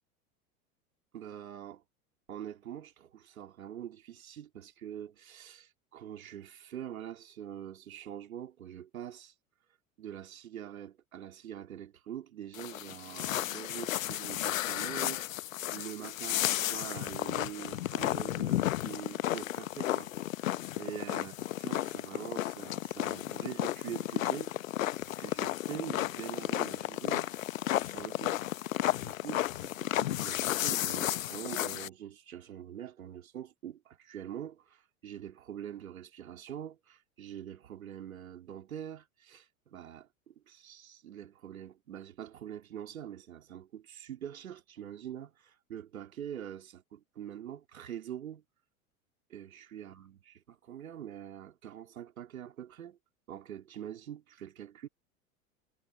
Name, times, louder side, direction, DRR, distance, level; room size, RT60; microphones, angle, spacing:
voice 1, 1.1-1.8 2.3-9.3 10.0-20.1 20.7-21.4 21.6-24.5 25.2-27.3 27.8-28.4 29.0-48.4 49.3-53.0 53.3-54.9, right 10 dB, 70° right, 3.5 m, -44 dB
sound 1, 12.5-31.9, left 14 dB, 65° left, 1.0 m, -33 dB
figure-of-eight pair, 85°, 44 cm